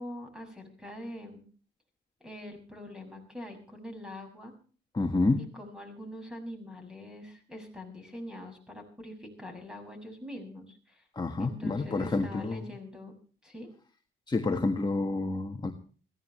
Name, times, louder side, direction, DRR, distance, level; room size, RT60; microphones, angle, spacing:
voice 1, 0.0-1.4 2.2-4.5 5.4-11.0 11.4-13.1 13.4-13.7, left 1 dB, 5° right, 5 dB, 6.8 m, -44 dB
voice 2, 4.9-5.4 11.1-12.6 14.3-15.7, left 3 dB, 20° left, 4 dB, 1.7 m, -28 dB
21.5 x 16.0 x 3.3 m, 0.40 s
cardioid pair, 90°, 20 cm